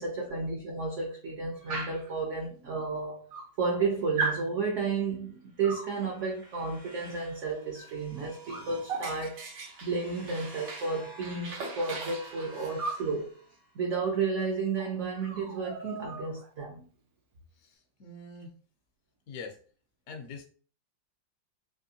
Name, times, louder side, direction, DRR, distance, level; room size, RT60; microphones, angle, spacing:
voice 1, 0.0-3.2 3.6-13.3 13.7-16.8, right 4 dB, 65° right, 0.7 m, -32 dB
Dog, 1.7-2.1 3.0-3.1 3.3-3.8 4.2-4.5 5.6-5.9 7.8-7.9 8.2-10.9 11.2-13.1 14.4-14.5 14.8-14.9 15.2-16.5, right 3 dB, 80° right, 1.5 m, -37 dB
sound 1, 5.6-13.9, right 2 dB, 30° right, 0.3 m, -51 dB
voice 2, 17.6-18.5 19.3-19.6 20.1-20.4, left 4 dB, 70° left, 0.7 m, -43 dB
3.5 x 2.5 x 2.7 m
omnidirectional pair, 2.0 m